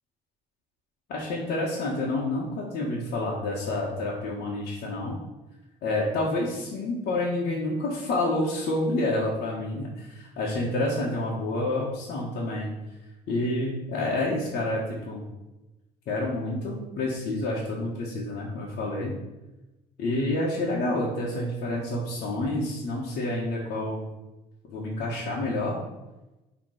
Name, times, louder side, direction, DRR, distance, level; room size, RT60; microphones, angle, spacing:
voice 1, 1.1-5.2 5.8-12.7 13.3-15.2 16.1-19.1 20.0-24.1 24.7-25.8, left 2 dB, 70° left, -6 dB, 1.7 m, -28 dB
8.5 x 3.5 x 5.0 m, 1.0 s
cardioid pair, 110°, 17 cm